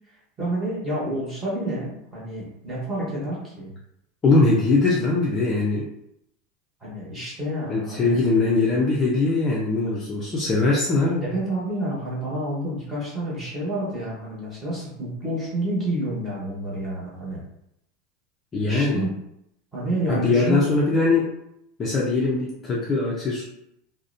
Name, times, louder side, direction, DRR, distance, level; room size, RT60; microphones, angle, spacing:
voice 1, 0.4-3.7 6.8-8.2 11.2-17.4 18.6-19.1 19.7-20.7, right 1 dB, 10° right, -7 dB, 0.9 m, -29 dB
voice 2, 4.2-5.9 7.7-11.3 18.5-19.1 20.1-21.3 21.8-23.4, left 3 dB, 20° left, -5 dB, 0.4 m, -21 dB
2.5 x 2.0 x 2.5 m, 0.78 s
supercardioid pair, 165°, 0 cm